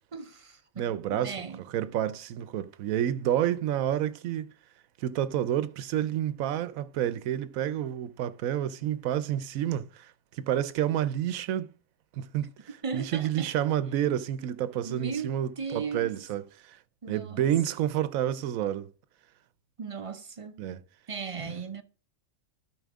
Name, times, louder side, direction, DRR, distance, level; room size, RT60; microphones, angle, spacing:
voice 1, 0.1-1.6 12.8-13.8 14.8-16.2 17.0-17.5 19.8-20.6 21.1-21.8, right 5 dB, 40° right, 0.5 m, -37 dB
voice 2, 0.8-1.4 1.7-4.5 5.0-11.7 12.1-12.5 12.9-16.8 17.1-18.9 20.6-20.8, right 11 dB, 90° right, 1.1 m, -29 dB
12.5 x 5.1 x 3.6 m
omnidirectional pair, 1.4 m